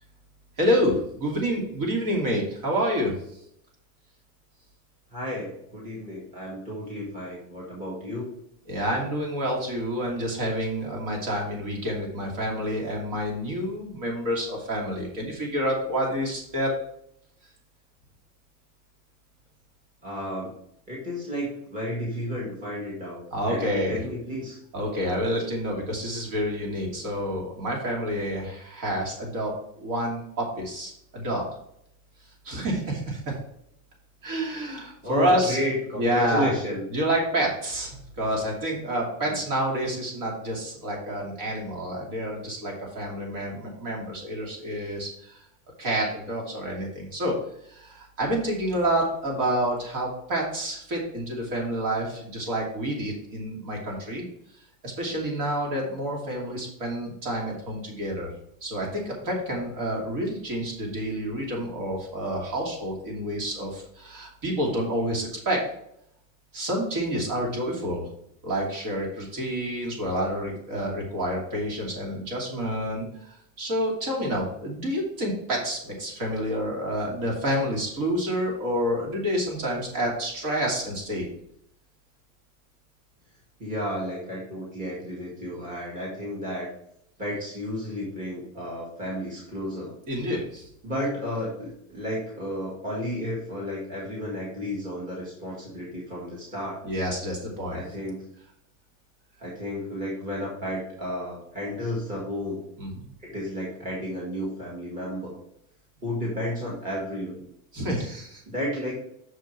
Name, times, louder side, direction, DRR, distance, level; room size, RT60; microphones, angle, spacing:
voice 1, 0.6-3.1 8.7-16.7 23.3-24.0 24.7-31.4 32.4-33.3 34.2-35.6 36.0-36.5 36.9-45.4 45.8-47.4 47.7-54.2 54.8-58.3 58.6-65.6 66.5-68.1 68.4-81.3 90.1-90.7 96.8-97.8 102.8-103.1 107.7-108.4, equal, 50° right, -1 dB, 2.7 m, -28 dB
voice 2, 5.1-8.3 20.0-20.6 20.9-24.6 35.0-36.8 39.2-39.4 83.6-86.7 87.2-89.9 90.8-96.8 97.7-98.3 99.4-102.6 103.2-105.4 106.0-107.4 108.5-109.0, equal, 20° right, -5 dB, 1.8 m, -32 dB
6.4 x 5.0 x 4.6 m, 0.73 s
cardioid pair, 170°, 42 cm